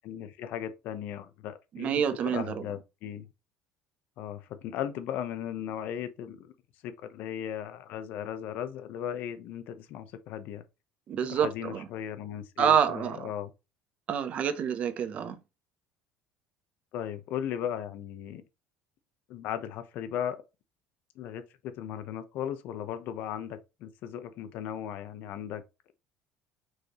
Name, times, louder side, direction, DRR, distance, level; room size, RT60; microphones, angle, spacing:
voice 1, 0.0-3.3 4.2-6.5 6.8-10.6 11.2-13.5 16.9-18.4 19.3-20.4 21.2-25.6, left 9 dB, 65° left, 0.8 m, -37 dB
voice 2, 1.8-2.6 11.1-11.8 12.6-13.3 14.1-15.4, right 8 dB, 45° right, 0.7 m, -27 dB
4.7 x 3.2 x 3.0 m
cardioid pair, 125°, 3 cm